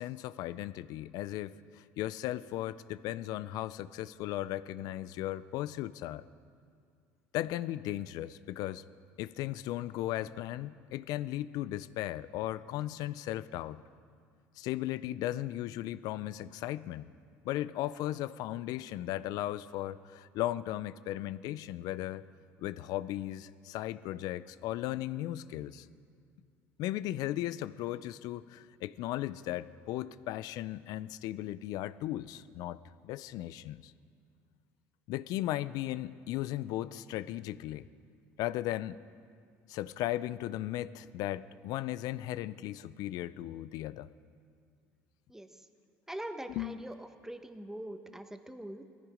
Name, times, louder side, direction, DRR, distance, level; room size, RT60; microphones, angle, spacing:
voice 1, 0.0-6.2 7.3-8.8 9.2-13.8 14.6-17.1 17.4-22.3 22.6-25.9 26.8-32.8 33.0-33.9 35.1-37.9 38.4-39.0 39.7-44.1 46.5-46.9, left 14 dB, 70° left, 16 dB, 0.5 m, -36 dB
voice 2, 46.1-48.8, right 1 dB, 5° right, 7 dB, 1.3 m, -43 dB
19.0 x 14.5 x 5.1 m, 2.3 s
supercardioid pair, 75°, 7 cm